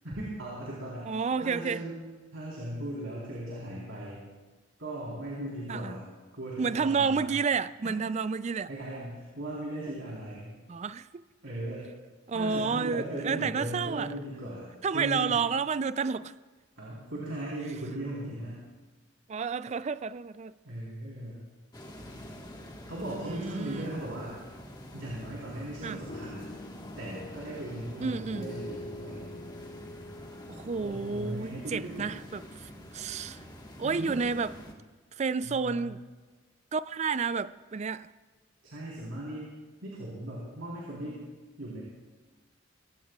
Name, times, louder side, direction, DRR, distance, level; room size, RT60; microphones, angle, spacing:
voice 1, 0.0-2.0 2.3-4.3 4.8-6.1 6.3-7.3 8.7-10.5 11.4-11.9 12.3-15.4 16.8-18.6 20.6-21.4 22.9-24.4 24.9-26.5 27.0-29.3 30.8-32.1 33.8-34.2 35.4-35.9 38.6-39.5 39.8-41.2 41.6-41.8, right 1 dB, 80° right, 3.9 m, -38 dB
voice 2, 1.0-1.8 5.7-5.9 6.6-8.7 10.7-11.2 12.3-14.1 14.8-16.3 19.3-20.6 23.2-23.9 25.8-26.0 28.0-28.5 30.5-33.4 33.8-34.5 35.2-36.0 36.7-38.1, right 5 dB, 35° right, 0.3 m, -30 dB
sound 1, 21.7-34.7, left 1 dB, 20° left, 1.5 m, -46 dB
sound 2, 26.1-32.1, left 2 dB, 35° left, 0.5 m, -46 dB
23.0 x 17.0 x 2.4 m
head